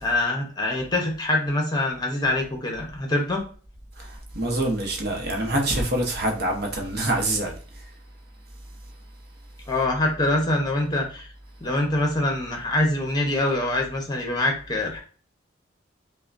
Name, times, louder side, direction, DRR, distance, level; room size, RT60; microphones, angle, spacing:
voice 1, 0.0-3.5 9.7-11.3 11.6-15.0, left 2 dB, 20° left, 0.8 m, -24 dB
voice 2, 4.0-7.8, right 1 dB, 55° right, 0.9 m, -26 dB
5.5 x 2.2 x 2.6 m
head